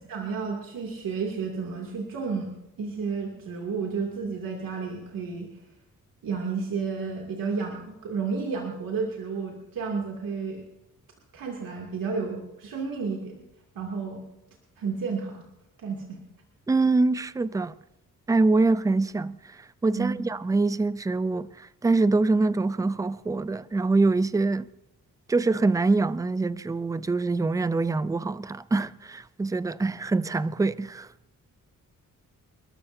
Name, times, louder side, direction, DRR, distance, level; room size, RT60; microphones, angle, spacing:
voice 1, 0.1-2.5 2.8-5.6 6.2-10.6 11.3-13.4 13.7-14.2 14.8-15.5 15.8-16.2 20.0-20.2, right 5 dB, 75° right, 2.6 m, -31 dB
voice 2, 16.7-17.7 18.3-24.7 25.3-31.1, right 3 dB, 10° right, 0.4 m, -24 dB
29.0 x 13.0 x 2.7 m
wide cardioid pair, 125°, 34 cm